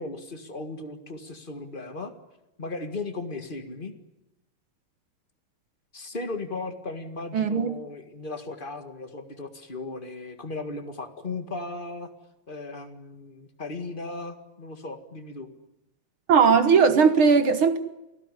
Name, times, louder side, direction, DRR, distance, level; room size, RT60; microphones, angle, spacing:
voice 1, 0.0-2.1 2.6-3.9 5.9-12.1 12.5-15.5, left 3 dB, 25° left, 1.2 m, -36 dB
voice 2, 7.3-7.7 16.3-17.8, right 6 dB, 55° right, 1.6 m, -18 dB
29.0 x 17.5 x 9.8 m
omnidirectional pair, 3.9 m